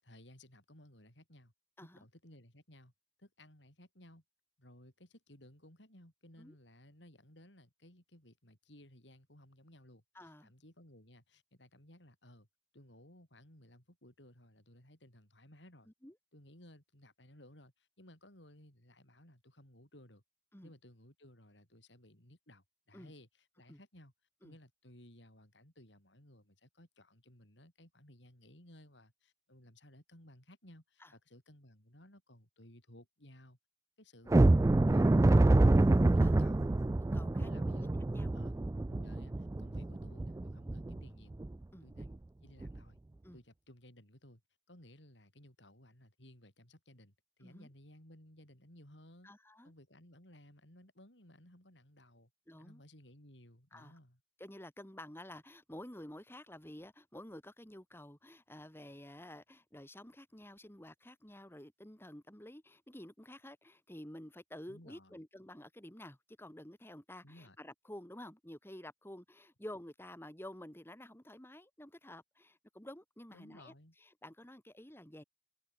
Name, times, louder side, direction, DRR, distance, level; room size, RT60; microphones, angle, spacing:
voice 1, 0.0-1.5 1.8-2.9 3.2-4.2 4.6-12.5 12.7-15.9 16.3-20.2 20.6-24.1 24.4-33.6 34.0-34.4 34.8-36.7 37.3-37.9 38.3-38.6 38.9-41.4 41.8-43.0 43.3-44.4 44.7-49.3 49.6-52.3 52.6-54.2 64.7-65.2 67.2-67.6 73.3-73.9, left 1 dB, 75° left, 8.0 m, -59 dB
voice 2, 10.1-10.5 16.0-16.1 20.5-20.7 22.9-23.1 23.7-23.8 24.4-24.5 31.0-31.1 36.2-36.3 37.0-38.3 41.7-41.8 43.2-43.4 47.4-47.7 49.2-49.7 52.5-52.8 53.7-53.9 54.4-75.2, left 1 dB, 15° left, 2.4 m, -51 dB
sound 1, 34.3-41.0 41.4-41.5 42.0-42.1 42.6-42.8, right 2 dB, 15° right, 0.3 m, -27 dB
head